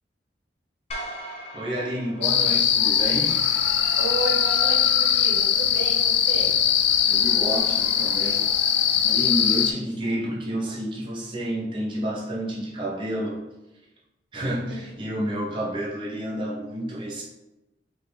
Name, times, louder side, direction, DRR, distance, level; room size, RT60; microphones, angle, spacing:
sound 1, 0.9-3.3, right 1 dB, 35° left, 0.6 m, -39 dB
voice 1, 1.5-3.4 7.1-8.5 9.0-13.5 14.3-17.2, equal, 30° right, -5 dB, 0.6 m, -30 dB
sound 2, 2.2-9.7, left 9 dB, 75° left, 0.3 m, -21 dB
voice 2, 4.0-6.6 14.4-15.1, right 2 dB, 75° right, -1 dB, 0.8 m, -33 dB
4.7 x 2.1 x 3.3 m, 0.98 s
head